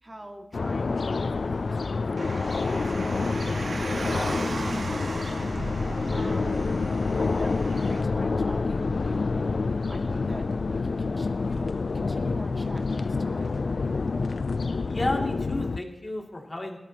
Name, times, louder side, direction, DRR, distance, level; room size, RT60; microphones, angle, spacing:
voice 1, 0.0-2.9 3.3-5.2 6.1-6.6 6.8-9.5 9.9-13.6, right 1 dB, 25° right, 3 dB, 2.1 m, -44 dB
sound 1, 0.5-15.8, left 4 dB, 65° left, 0.3 m, -27 dB
Car, 2.2-8.0, right 2 dB, 65° right, 1.3 m, -36 dB
voice 2, 14.9-16.8, left 1 dB, 35° left, 0 dB, 2.8 m, -32 dB
19.5 x 13.5 x 3.0 m, 1.1 s
wide cardioid pair, 60°, 0 cm